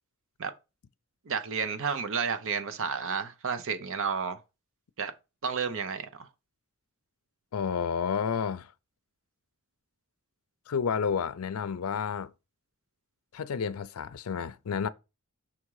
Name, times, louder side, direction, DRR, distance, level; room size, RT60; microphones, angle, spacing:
voice 1, 1.3-4.4 5.0-5.1 5.4-6.3, right 6 dB, 65° right, 0.7 m, -31 dB
voice 2, 7.5-8.7 10.7-12.3 13.3-14.9, left 6 dB, 80° left, 0.5 m, -30 dB
5.9 x 3.7 x 4.7 m
head